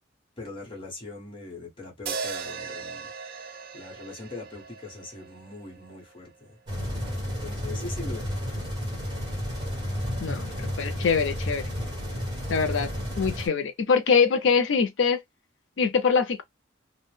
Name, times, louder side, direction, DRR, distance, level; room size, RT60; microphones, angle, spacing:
voice 1, 0.4-3.1 3.7-6.6 7.2-8.3, left 2 dB, 30° left, 1.0 m, -41 dB
sound 1, 2.1-6.3, right 5 dB, 55° right, 0.5 m, -38 dB
sound 2, 6.7-13.5, equal, 25° right, 1.5 m, -32 dB
voice 2, 10.2-11.7 12.5-12.9 13.2-15.2 15.8-16.4, left 5 dB, 75° left, 0.5 m, -23 dB
2.6 x 2.1 x 3.1 m
head